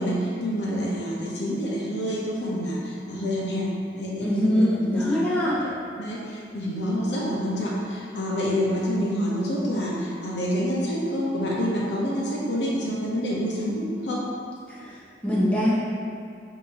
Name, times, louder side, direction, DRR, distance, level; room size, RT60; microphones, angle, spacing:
voice 1, 0.0-3.7 3.9-5.2 6.0-14.3, equal, 70° left, -5 dB, 0.8 m, -27 dB
voice 2, 4.2-5.6 14.7-15.7, left 1 dB, 5° left, -9 dB, 0.7 m, -23 dB
5.3 x 2.8 x 2.9 m, 2.4 s
head